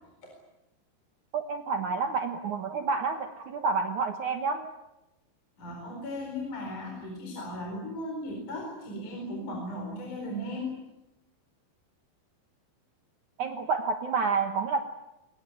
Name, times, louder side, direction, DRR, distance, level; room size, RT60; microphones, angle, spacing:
voice 1, 1.3-4.7 13.4-14.8, right 4 dB, 70° right, 6 dB, 1.8 m, -29 dB
voice 2, 5.6-10.8, left 1 dB, 40° left, 1 dB, 5.7 m, -36 dB
23.5 x 21.0 x 9.3 m, 0.93 s
omnidirectional pair, 5.5 m